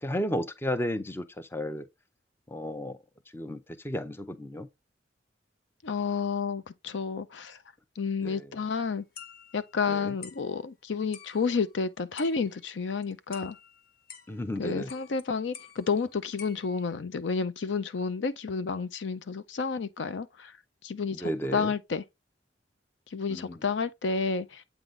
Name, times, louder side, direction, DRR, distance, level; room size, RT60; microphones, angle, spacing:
voice 1, 0.0-1.9 2.5-3.0 3.3-4.7 8.2-8.5 9.9-10.1 14.3-14.9 21.2-21.7 23.3-23.6, equal, 15° left, 0.5 m, -33 dB
voice 2, 5.8-7.6 8.0-9.0 9.5-13.6 14.6-20.5 20.8-22.0 23.1-24.6, left 5 dB, 75° left, 0.5 m, -30 dB
sound 1, 9.2-9.9 10.2-10.5 11.1-11.8 12.2-12.8 13.0-14.5 14.9-15.2 15.5-16.9, left 7 dB, 55° left, 0.9 m, -49 dB
8.1 x 3.9 x 3.2 m
head